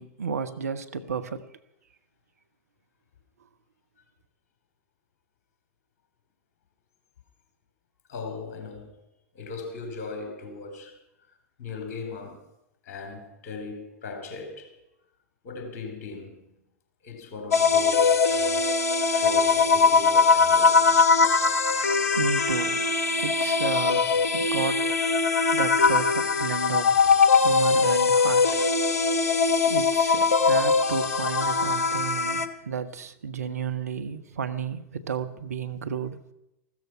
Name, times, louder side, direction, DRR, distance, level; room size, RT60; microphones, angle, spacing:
voice 1, 0.0-1.4 22.1-22.9 23.1-28.6 29.7-36.2, right 6 dB, 70° right, 0.9 m, -32 dB
voice 2, 8.1-9.0 9.3-11.0 11.3-12.5 12.8-14.8 15.4-16.6 17.0-21.1 35.3-35.4, left 3 dB, 50° left, 3.7 m, -39 dB
sound 1, 17.5-32.5, left 4 dB, 65° left, 1.0 m, -21 dB
14.5 x 13.5 x 5.8 m
figure-of-eight pair, 90°, 9 cm